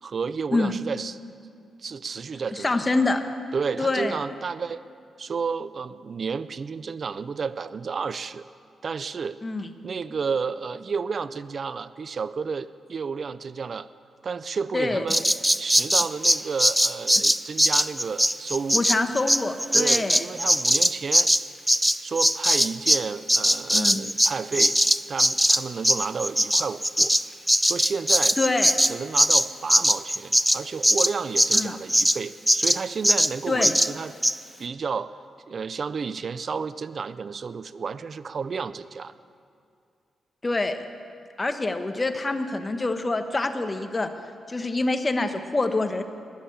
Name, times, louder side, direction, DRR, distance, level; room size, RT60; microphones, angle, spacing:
voice 1, 0.0-1.2 1.8-3.0 3.5-4.8 5.2-8.4 8.8-9.4 9.8-13.9 14.2-18.8 19.7-21.3 22.0-24.8 25.1-27.1 27.6-28.4 28.8-34.1 34.6-35.2 35.5-39.1, right 5 dB, 55° right, 15 dB, 0.4 m, -31 dB
voice 2, 2.6-3.2 3.8-4.2 9.4-9.7 14.7-15.0 18.7-20.3 23.7-24.0 28.4-28.7 31.5-31.8 33.5-33.8 40.4-40.8 41.4-44.1 44.5-46.0, left 2 dB, 30° left, 8 dB, 1.3 m, -25 dB
Bird vocalization bird call bird song, 15.1-23.0 23.3-32.2 32.5-32.8 33.0-33.3 33.6-33.9 34.2-34.3, equal, 5° right, 0.5 m, -21 dB
21.0 x 7.2 x 8.6 m, 2.4 s
supercardioid pair, 50°, 0 cm